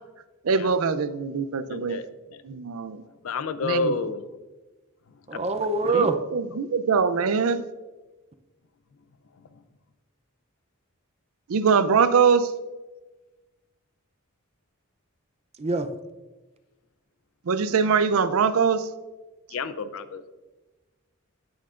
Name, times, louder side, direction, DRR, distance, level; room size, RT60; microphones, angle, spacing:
voice 1, 0.4-2.0 2.4-3.0 3.6-4.0 5.9-7.6 11.5-12.5 17.5-18.9, right 5 dB, 80° right, 0.5 m, -22 dB
voice 2, 1.7-2.4 3.2-4.2 5.3-5.4 5.9-6.0 9.4-9.6 19.5-20.3, left 4 dB, 70° left, 0.5 m, -30 dB
voice 3, 5.3-6.2 15.6-15.9, right 3 dB, 30° right, 0.5 m, -24 dB
9.2 x 8.8 x 2.5 m
head